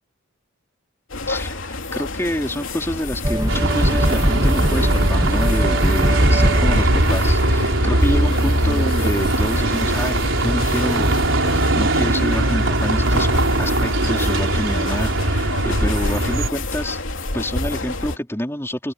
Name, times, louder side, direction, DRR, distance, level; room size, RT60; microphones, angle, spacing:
sound 1, 1.1-18.2, left 2 dB, 70° left, 3.2 m, -28 dB
voice 1, 1.3-13.3 13.6-17.0 17.3-18.9, equal, 10° left, 4.5 m, -27 dB
sound 2, 3.2-7.7, equal, 20° right, 2.8 m, -22 dB
Bus, 3.5-16.5, right 1 dB, 70° right, 4.3 m, -20 dB
open air
head